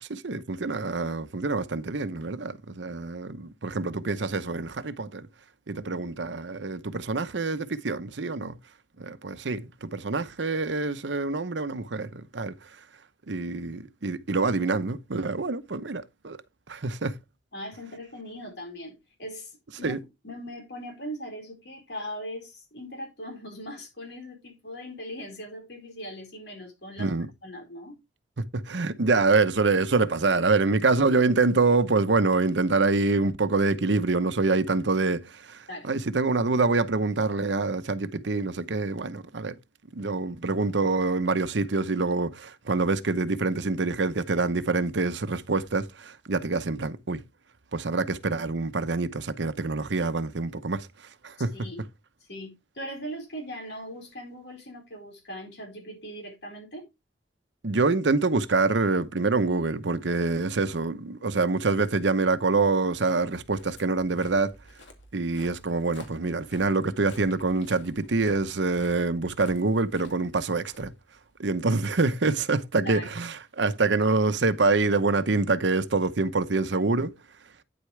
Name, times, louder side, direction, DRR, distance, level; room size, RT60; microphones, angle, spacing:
voice 1, 0.0-5.3 5.7-8.6 9.0-12.5 13.3-16.4 16.7-17.1 19.8-20.0 27.0-27.3 28.4-39.5 39.9-47.2 47.7-50.9 51.2-51.5 57.6-64.5 65.1-70.9 71.4-77.1, right 3 dB, 80° right, 0.8 m, -26 dB
voice 2, 5.8-6.1 17.5-27.1 27.4-28.0 35.7-35.9 51.4-51.8 52.3-56.9 72.8-73.1, equal, 65° left, 4.6 m, -40 dB
Walk footsteps, 63.2-71.5, left 2 dB, 85° left, 2.5 m, -52 dB
9.6 x 8.2 x 3.2 m
head